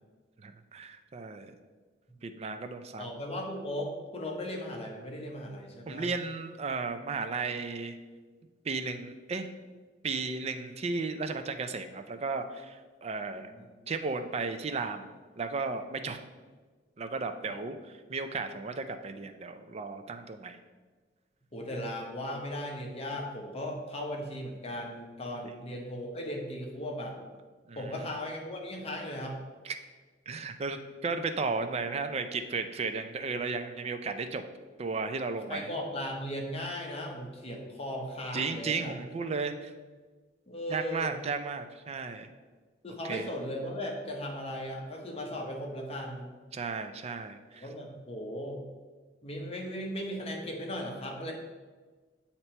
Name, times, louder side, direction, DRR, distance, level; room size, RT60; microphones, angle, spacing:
voice 1, 0.4-1.5 2.2-3.2 5.9-8.0 8.6-9.5 10.0-13.5 13.9-15.1 15.4-16.2 17.0-20.6 25.4-25.5 27.7-28.1 29.6-29.8 30.3-34.4 34.8-35.7 38.3-39.7 40.7-42.3 43.0-43.3 46.5-47.7, right 4 dB, 35° right, 8 dB, 0.4 m, -34 dB
voice 2, 2.2-2.5 3.0-6.1 13.3-13.7 17.5-17.6 21.5-27.2 27.7-29.4 35.5-39.0 40.5-41.2 42.8-46.4 47.6-48.6 49.2-51.3, equal, 35° left, 0 dB, 0.9 m, -37 dB
8.1 x 2.9 x 4.3 m, 1.4 s
head